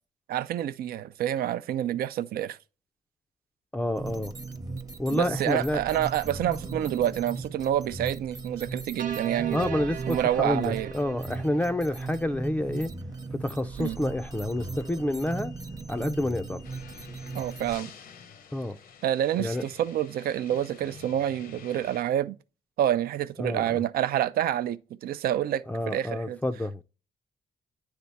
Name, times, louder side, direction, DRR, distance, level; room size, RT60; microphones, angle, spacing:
voice 1, 0.3-2.6 5.1-9.6 10.1-10.9 13.8-14.0 17.3-17.9 19.0-22.4 22.8-26.4, right 11 dB, 80° right, 0.5 m, -28 dB
voice 2, 3.7-4.3 5.0-5.8 9.5-12.9 13.3-15.5 15.9-16.6 18.5-18.8 19.4-19.6 23.4-23.8 25.7-26.8, left 1 dB, 10° left, 0.4 m, -29 dB
sound 1, 4.0-17.8, right 3 dB, 25° right, 0.8 m, -38 dB
sound 2, 9.0-12.3, right 7 dB, 65° right, 0.9 m, -38 dB
sound 3, 16.6-22.0, left 6 dB, 80° left, 0.8 m, -48 dB
9.6 x 3.4 x 4.1 m
cardioid pair, 100°, 15 cm